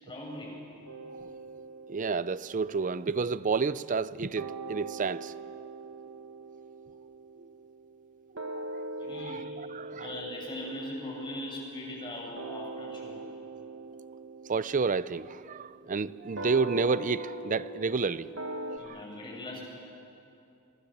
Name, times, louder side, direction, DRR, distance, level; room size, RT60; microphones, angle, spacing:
voice 1, 0.0-0.6 9.0-9.5 9.9-13.2 18.8-19.6, left 1 dB, 25° left, 7.7 m, -40 dB
sound 1, 0.9-4.1 4.4-18.8, right 2 dB, 65° right, 1.7 m, -42 dB
voice 2, 1.9-5.3 8.5-10.1 14.5-18.6 18.8-19.0, right 4 dB, 40° right, 0.5 m, -30 dB
28.5 x 23.5 x 7.4 m
head